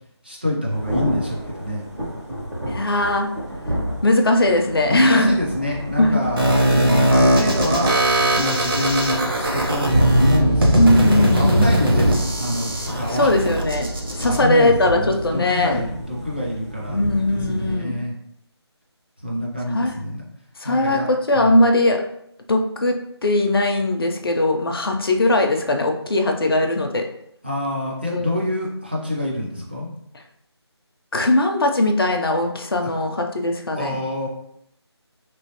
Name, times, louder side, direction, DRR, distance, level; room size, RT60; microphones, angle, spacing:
voice 1, 0.2-1.8 4.9-7.9 8.4-13.3 14.2-17.0 17.5-18.1 19.2-20.2 20.6-21.1 21.3-21.6 27.4-29.9 33.7-34.3, left 1 dB, 20° right, -5 dB, 0.4 m, -26 dB
Thunder / Rain, 0.7-17.7, equal, 90° right, 1.5 m, -28 dB
voice 2, 2.7-3.3 4.0-5.3 6.0-6.2 10.8-11.7 13.1-13.9 14.1-15.8 16.9-18.0 19.7-19.9 20.6-22.0 22.5-23.0 23.2-27.1 28.1-28.3 31.1-34.0, left 1 dB, 55° left, 4 dB, 0.5 m, -19 dB
sound 1, 6.4-14.4, right 1 dB, 55° right, 0.7 m, -20 dB
3.0 x 2.8 x 2.8 m, 0.73 s
figure-of-eight pair, 170°, 14 cm